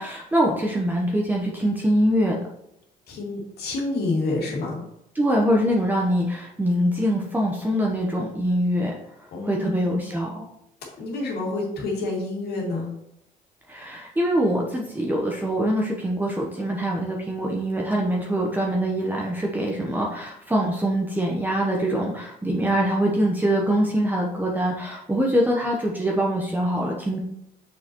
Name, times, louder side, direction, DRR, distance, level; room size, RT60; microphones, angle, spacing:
voice 1, 0.0-2.4 5.1-9.0 9.4-10.5 13.7-27.2, equal, 10° right, -1 dB, 0.9 m, -24 dB
voice 2, 3.1-4.8 9.3-10.1 11.0-12.9, left 2 dB, 70° left, -2 dB, 2.4 m, -28 dB
6.5 x 5.5 x 3.0 m, 0.79 s
cardioid pair, 110°, 17 cm